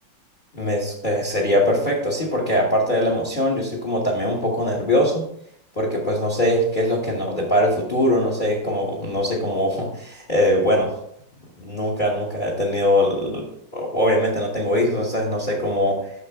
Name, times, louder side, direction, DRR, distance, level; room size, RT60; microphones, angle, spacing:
voice 1, 0.5-5.3 5.7-10.9 11.6-13.5 13.7-16.0, equal, 30° left, -2 dB, 1.3 m, -22 dB
6.9 x 6.4 x 3.5 m, 0.69 s
omnidirectional pair, 2.1 m